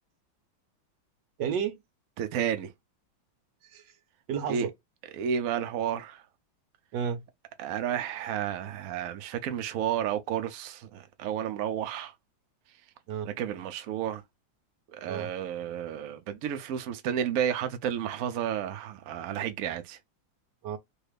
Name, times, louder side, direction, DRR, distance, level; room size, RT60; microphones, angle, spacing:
voice 1, 1.4-1.8 3.6-3.9 4.3-4.7 6.9-7.2 13.1-13.3 15.1-15.3 20.6-20.8, right 7 dB, 70° right, 1.3 m, -32 dB
voice 2, 2.2-2.7 4.5-4.7 5.1-6.2 7.6-12.1 13.2-14.2 14.9-20.0, right 9 dB, 85° right, 0.7 m, -31 dB
3.3 x 2.3 x 3.3 m
omnidirectional pair, 2.2 m